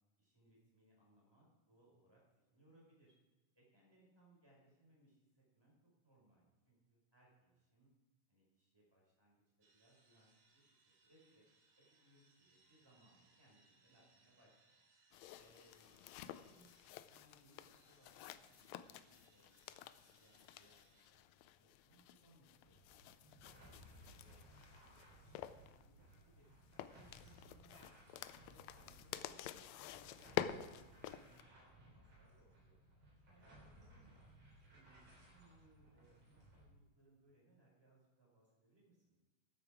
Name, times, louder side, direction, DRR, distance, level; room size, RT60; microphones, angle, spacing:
voice 1, 0.2-3.1 3.5-5.7 6.0-7.9 8.3-9.4 9.7-11.4 11.7-14.8 15.4-16.1 16.4-16.7 17.0-22.7 23.2-23.5 23.9-25.9 26.2-26.5 26.8-30.9 31.1-31.3 31.6-32.9 33.3-34.3 34.7-39.2, right 1 dB, 5° right, -4 dB, 4.6 m, -71 dB
sound 1, 9.6-21.1, right 3 dB, 90° right, 3.4 m, -74 dB
sound 2, 15.1-31.4, left 11 dB, 85° left, 1.5 m, -49 dB
sound 3, 22.6-36.6, right 1 dB, 50° right, 4.7 m, -63 dB
14.0 x 8.3 x 4.9 m, 1.2 s
omnidirectional pair, 3.7 m